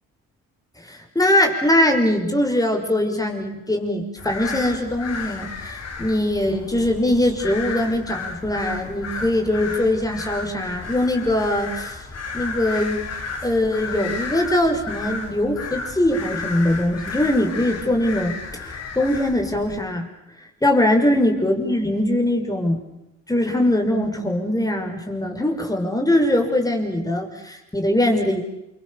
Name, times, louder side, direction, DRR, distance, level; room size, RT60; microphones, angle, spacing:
voice 1, 0.9-12.0 12.3-13.1 13.4-18.3 18.7-20.1 20.6-22.8 23.3-28.4, left 1 dB, 10° left, 3 dB, 5.7 m, -21 dB
sound 1, 4.2-19.8, left 4 dB, 55° left, 5.3 m, -33 dB
29.0 x 24.5 x 7.1 m, 0.90 s
cardioid pair, 90°, 30 cm